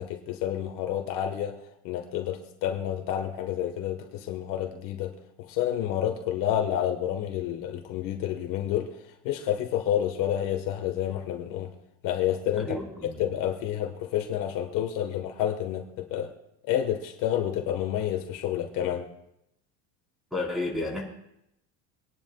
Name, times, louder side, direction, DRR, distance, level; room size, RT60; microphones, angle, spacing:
voice 1, 0.0-1.6 1.8-5.1 5.4-9.0 9.2-11.7 12.0-12.8 13.0-16.3 16.6-19.1, left 10 dB, 60° left, 4 dB, 1.4 m, -29 dB
voice 2, 12.6-13.2 20.3-21.0, left 2 dB, ahead, -2 dB, 4.1 m, -31 dB
25.0 x 10.5 x 2.3 m, 0.81 s
cardioid pair, 150°, 37 cm